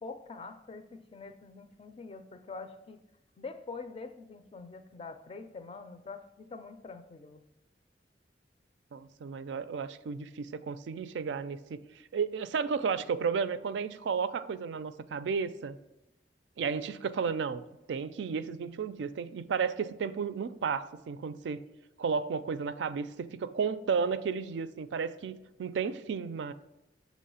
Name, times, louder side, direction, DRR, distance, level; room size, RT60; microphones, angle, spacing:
voice 1, 0.0-3.0 3.4-7.4, left 4 dB, 30° left, 0.4 m, -45 dB
voice 2, 8.9-11.8 12.1-15.8 16.6-21.6 22.0-26.5, right 6 dB, 85° right, 0.3 m, -33 dB
6.5 x 3.0 x 5.5 m
head